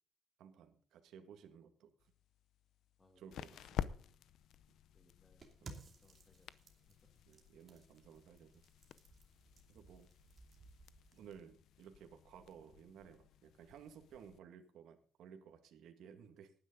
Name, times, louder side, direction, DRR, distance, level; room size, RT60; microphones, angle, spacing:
voice 1, 0.4-2.1 3.2-3.9 5.6-5.7 7.3-8.6 9.7-10.1 11.1-16.5, right 8 dB, 70° right, 6 dB, 1.9 m, -57 dB
sound 1, 2.0-14.4, left 10 dB, 65° left, 0.7 m, -51 dB
voice 2, 4.9-5.5 5.9-7.0 8.0-8.1, left 2 dB, 15° left, 5 dB, 1.8 m, -72 dB
sound 2, 5.4-11.2, right 3 dB, 25° right, 2.7 m, -59 dB
18.5 x 9.8 x 3.9 m, 0.44 s
cardioid pair, 175°, 0 cm